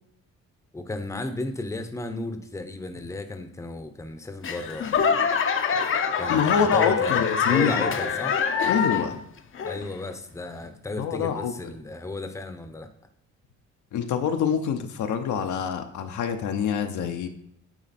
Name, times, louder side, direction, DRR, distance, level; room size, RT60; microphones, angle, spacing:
voice 1, 0.7-4.9 6.2-7.2 7.5-8.4 9.6-12.9, left 2 dB, 10° left, 7 dB, 0.7 m, -34 dB
Laughter / Clapping / Crowd, 4.4-9.2 9.5-10.1 10.6-10.7, left 6 dB, 45° left, 0.6 m, -25 dB
voice 2, 6.3-7.9 8.7-9.2 11.0-11.7 13.9-17.3, left 7 dB, 75° left, 6 dB, 0.8 m, -25 dB
9.0 x 3.3 x 4.2 m, 0.74 s
cardioid pair, 90°, 30 cm